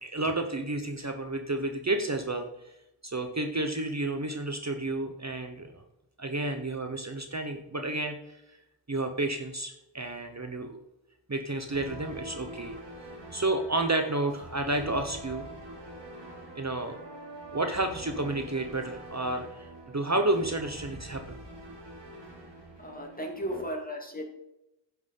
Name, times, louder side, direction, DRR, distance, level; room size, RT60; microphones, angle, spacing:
voice 1, 0.0-2.5 3.0-5.7 6.2-8.4 8.9-10.8 11.3-12.8 13.3-15.5 16.5-17.0 17.5-21.4, right 2 dB, 40° right, 6 dB, 1.0 m, -31 dB
sound 1, 11.7-23.6, right 1 dB, 75° right, 3.2 m, -44 dB
voice 2, 22.8-24.2, equal, 20° left, 0 dB, 2.6 m, -35 dB
10.5 x 6.2 x 5.5 m, 0.88 s
wide cardioid pair, 60°, 43 cm